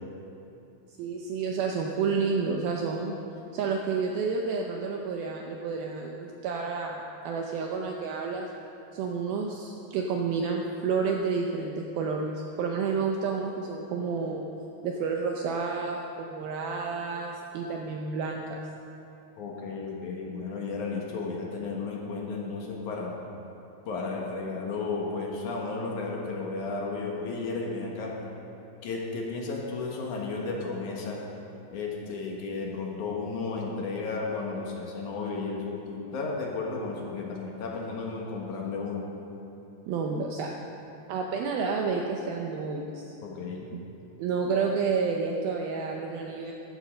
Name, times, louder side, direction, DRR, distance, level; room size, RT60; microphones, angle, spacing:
voice 1, 1.0-3.1 3.5-8.5 8.9-14.4 14.8-18.5 39.9-40.5 41.1-43.2 43.7-43.8 44.2-46.5, right 5 dB, 80° right, 1 dB, 2.2 m, -30 dB
voice 2, 19.4-23.2 23.9-28.2 28.8-31.3 31.7-39.1 43.2-43.7, left 4 dB, 60° left, -2 dB, 2.2 m, -33 dB
15.0 x 8.2 x 6.4 m, 2.9 s
omnidirectional pair, 5.1 m